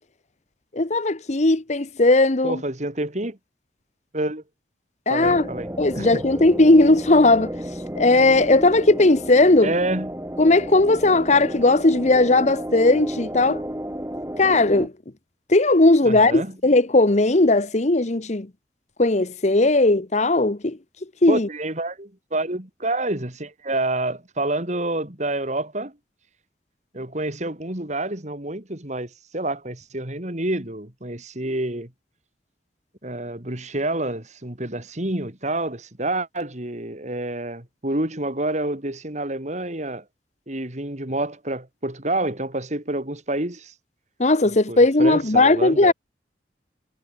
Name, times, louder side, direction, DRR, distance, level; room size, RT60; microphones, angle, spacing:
voice 1, 0.7-2.6 5.1-5.5 5.8-7.5 7.9-9.7 10.4-13.6 14.4-14.9 15.5-18.5 19.0-20.8 21.2-21.5 44.2-45.9, left 2 dB, 40° left, 1.1 m, -17 dB
voice 2, 2.4-3.4 4.1-4.4 5.1-5.7 5.9-6.2 9.6-10.1 16.0-16.5 21.3-25.9 26.9-31.9 33.0-40.0 40.5-43.7 44.7-45.9, right 2 dB, 40° right, 3.2 m, -28 dB
sound 1, 5.2-14.9, equal, 15° right, 4.1 m, -32 dB
head